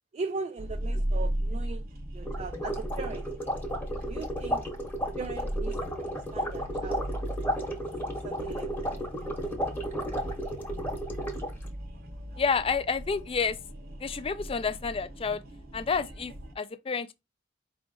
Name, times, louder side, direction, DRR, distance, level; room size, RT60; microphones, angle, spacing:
voice 1, 0.1-1.8 2.1-3.3 4.1-4.6 5.2-7.1 8.0-8.8, right 4 dB, 35° right, 0.3 m, -39 dB
sound 1, 0.6-16.5, right 1 dB, 50° right, 0.8 m, -37 dB
sound 2, 2.2-11.7, equal, 10° left, 1.0 m, -33 dB
voice 2, 12.4-13.6 14.0-15.4 15.7-17.1, left 5 dB, 30° left, 0.4 m, -29 dB
4.8 x 2.5 x 3.7 m
head